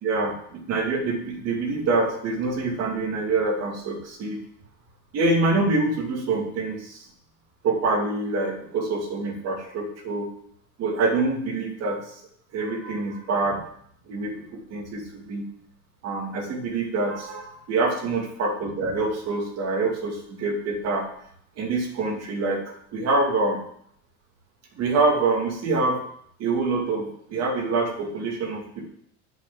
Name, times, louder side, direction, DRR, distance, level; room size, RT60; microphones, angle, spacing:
voice 1, 0.0-4.4 5.1-7.1 7.6-10.3 10.8-12.2 12.5-13.6 14.1-15.5 16.0-21.1 21.6-23.6 24.7-26.0 26.4-28.9, right 3 dB, 40° right, 2 dB, 2.4 m, -26 dB
9.0 x 5.1 x 7.5 m, 0.66 s
cardioid pair, 145°, 37 cm